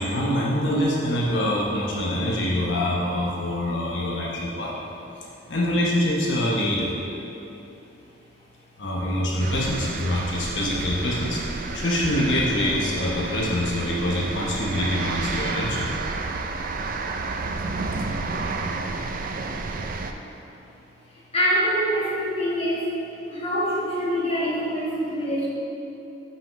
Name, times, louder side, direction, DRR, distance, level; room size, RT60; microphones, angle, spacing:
voice 1, 0.0-4.8 5.5-6.9 8.8-11.4 11.7-15.9, left 1 dB, 75° left, -4 dB, 0.9 m, -25 dB
sound 1, 9.4-20.1, right 3 dB, 50° right, 0.4 m, -30 dB
voice 2, 21.3-23.0 23.3-25.5, equal, 35° left, -6 dB, 1.5 m, -24 dB
6.1 x 5.7 x 5.2 m, 2.9 s
head